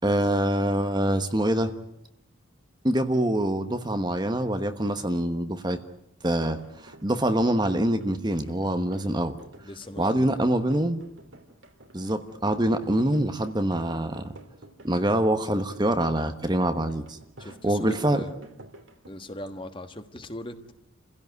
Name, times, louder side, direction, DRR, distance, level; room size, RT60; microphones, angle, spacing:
voice 1, 0.0-1.7 2.8-5.8 6.2-9.3 10.0-11.0 11.9-14.3 14.8-18.2, right 1 dB, 20° right, 8 dB, 1.2 m, -25 dB
sound 1, 6.4-19.1, right 1 dB, 75° right, 3.3 m, -51 dB
voice 2, 9.6-10.5 17.4-18.4 19.1-20.7, left 1 dB, 25° left, 8 dB, 1.5 m, -39 dB
29.5 x 16.5 x 9.3 m, 0.80 s
head